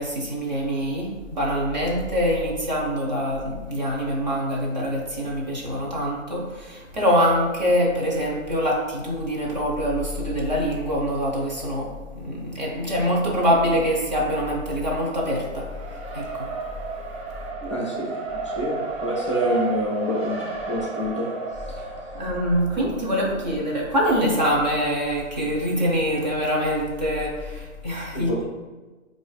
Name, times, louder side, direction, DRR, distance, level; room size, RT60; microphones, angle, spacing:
voice 1, 0.0-15.7 16.1-16.5 22.1-28.4, equal, 35° right, -4 dB, 0.8 m, -24 dB
Race car auto racing, 14.7-23.8, right 3 dB, 50° right, 1.1 m, -33 dB
voice 2, 17.6-21.3 28.1-28.4, equal, 25° left, -4 dB, 0.5 m, -27 dB
4.6 x 2.5 x 2.4 m, 1.3 s
hypercardioid pair, 170°, 40 cm